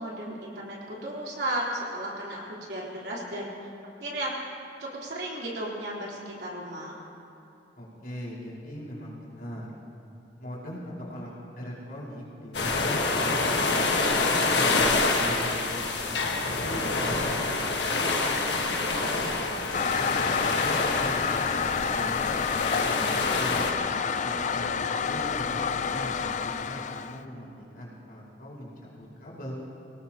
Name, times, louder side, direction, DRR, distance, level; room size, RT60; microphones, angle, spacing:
voice 1, 0.0-3.7 4.0-4.4 4.8-7.0 22.5-23.6, right 1 dB, 65° right, -5 dB, 4.0 m, -35 dB
voice 2, 7.8-9.7 10.4-11.3 11.6-14.7 15.1-20.1 20.4-22.2 22.7-23.6 24.1-27.5 27.7-29.6, equal, 60° left, -6 dB, 5.0 m, -40 dB
sound 1, 12.5-23.7, left 3 dB, 80° left, 1.5 m, -27 dB
Toilet flush, 19.7-27.2, left 6 dB, 45° left, 0.5 m, -29 dB
24.5 x 18.5 x 3.0 m, 2.7 s
head